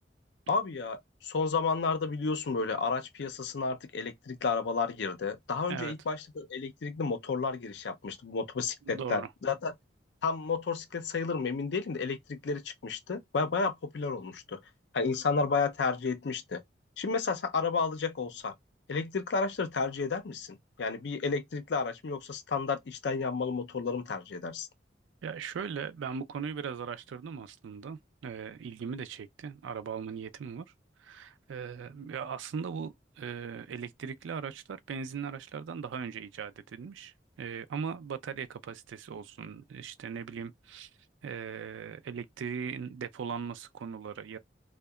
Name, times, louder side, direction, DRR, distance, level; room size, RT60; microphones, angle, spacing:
voice 1, 0.5-9.7 10.2-14.6 14.9-16.6 17.0-18.5 18.9-24.7, left 4 dB, 65° left, 0.5 m, -32 dB
voice 2, 8.9-9.3 25.2-30.7 31.0-40.9 41.2-44.4, right 6 dB, 85° right, 0.3 m, -39 dB
2.7 x 2.2 x 2.2 m
head